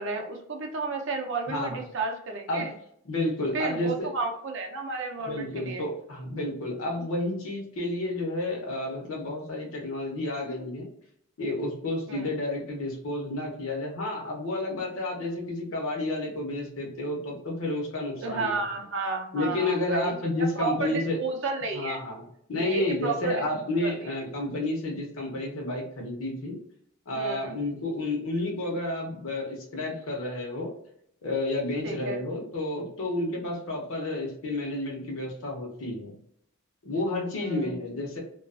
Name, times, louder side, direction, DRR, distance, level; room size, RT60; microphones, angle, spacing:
voice 1, 0.0-2.7 3.5-5.8 12.1-12.3 18.2-20.1 20.6-22.0 22.6-23.4 23.8-23.9 27.1-27.6 31.8-32.2 37.3-37.8, right 4 dB, 60° right, 3 dB, 0.5 m, -32 dB
voice 2, 1.5-1.8 2.5-2.6 3.1-4.1 5.3-10.9 11.4-18.6 19.3-21.2 21.7-22.2 22.5-26.6 27.1-30.7 31.2-36.1 36.8-38.2, left 2 dB, 75° left, -1 dB, 0.7 m, -30 dB
2.3 x 2.3 x 2.4 m, 0.69 s
head